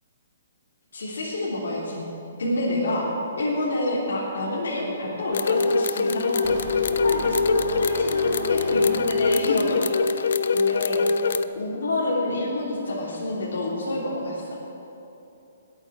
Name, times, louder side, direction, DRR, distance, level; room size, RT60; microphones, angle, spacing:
voice 1, 0.9-2.0 2.4-3.1 3.4-11.0 11.5-14.6, left 1 dB, 90° left, -6 dB, 3.2 m, -28 dB
sound 1, 5.3-11.4, left 4 dB, 65° left, 0.5 m, -23 dB
sound 2, 6.4-9.7, right 2 dB, 25° right, 1.4 m, -37 dB
21.5 x 8.9 x 4.9 m, 3.0 s
hypercardioid pair, 170°, 0 cm